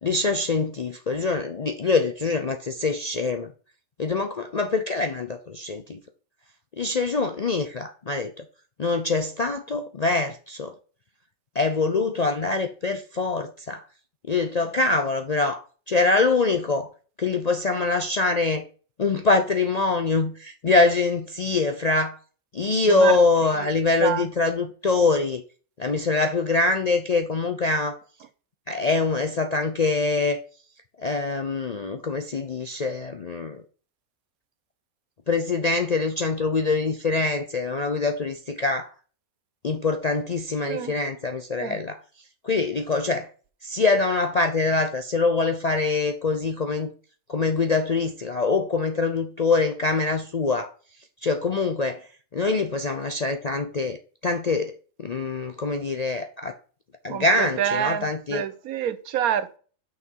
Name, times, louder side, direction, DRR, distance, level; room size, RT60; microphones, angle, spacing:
voice 1, 0.0-3.5 4.0-6.0 6.8-8.4 8.8-10.7 11.5-13.8 14.3-16.9 17.2-18.6 19.0-22.2 22.5-25.4 25.8-28.0 28.7-30.4 31.0-33.6 35.3-38.9 39.6-42.0 42.4-43.3 43.6-46.9 47.3-50.7 51.2-52.1 52.3-54.0 54.2-56.5 57.0-58.4, left 3 dB, 55° left, 0.4 m, -24 dB
voice 2, 22.9-23.2 24.0-24.3 40.7-40.9 41.6-41.8 57.1-59.6, right 9 dB, 85° right, 1.2 m, -27 dB
6.1 x 6.0 x 4.5 m
omnidirectional pair, 1.5 m